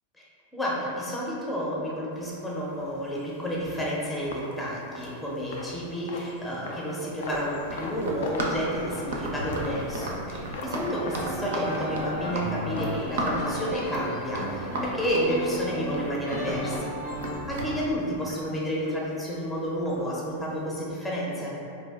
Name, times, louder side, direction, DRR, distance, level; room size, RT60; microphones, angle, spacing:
voice 1, 0.5-16.9 17.5-21.5, equal, 5° left, -6 dB, 0.6 m, -30 dB
sound 1, 2.1-20.9, left 2 dB, 65° left, 0.3 m, -43 dB
Run, 7.2-17.7, right 2 dB, 70° right, 0.4 m, -34 dB
sound 2, 10.6-17.3, equal, 90° left, 1.1 m, -35 dB
2.6 x 2.2 x 3.4 m, 2.6 s
figure-of-eight pair, 95°, 0 cm